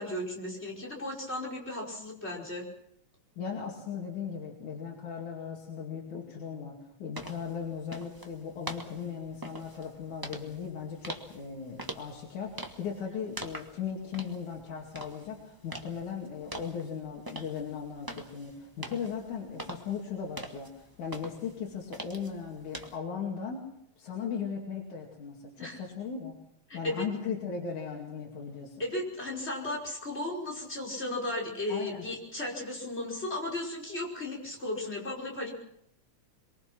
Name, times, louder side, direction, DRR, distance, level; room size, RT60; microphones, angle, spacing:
voice 1, 0.0-2.7 25.6-25.8 26.7-27.1 28.8-35.5, left 1 dB, 20° left, 0 dB, 5.5 m, -35 dB
voice 2, 3.4-23.6 24.0-26.4 26.7-28.8 31.7-32.1, left 6 dB, 85° left, -1 dB, 3.9 m, -37 dB
sound 1, 7.1-23.0, right 1 dB, 15° right, 0.9 m, -45 dB
23.5 x 23.0 x 6.1 m, 0.73 s
omnidirectional pair, 3.3 m